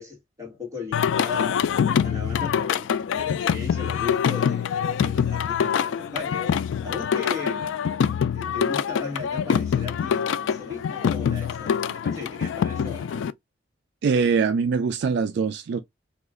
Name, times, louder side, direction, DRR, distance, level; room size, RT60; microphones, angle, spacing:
voice 1, 0.0-4.7 5.0-6.5 6.8-7.8 8.3-13.3, left 5 dB, 15° right, 1.7 m, -36 dB
Singing, 0.9-13.3, left 7 dB, 80° left, 0.3 m, -25 dB
voice 2, 14.0-15.8, right 5 dB, 60° right, 0.3 m, -23 dB
3.0 x 2.4 x 3.6 m
head